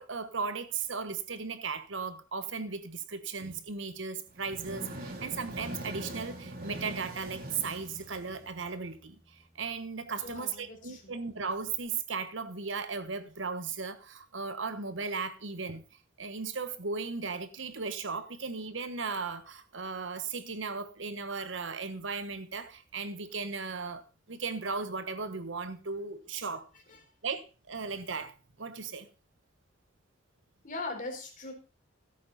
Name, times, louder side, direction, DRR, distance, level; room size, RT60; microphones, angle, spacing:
voice 1, 0.0-9.2 9.5-15.8 16.2-24.0 24.3-26.6 27.2-28.3 28.6-29.1, right 5 dB, 80° right, 1.2 m, -36 dB
sound 1, 4.3-8.8, right 1 dB, 50° right, 2.9 m, -42 dB
Bass guitar, 5.6-11.8, equal, 10° left, 2.3 m, -59 dB
voice 2, 10.2-11.2 26.9-27.0 30.6-31.5, left 3 dB, 45° left, 4.2 m, -40 dB
15.5 x 8.7 x 4.1 m
head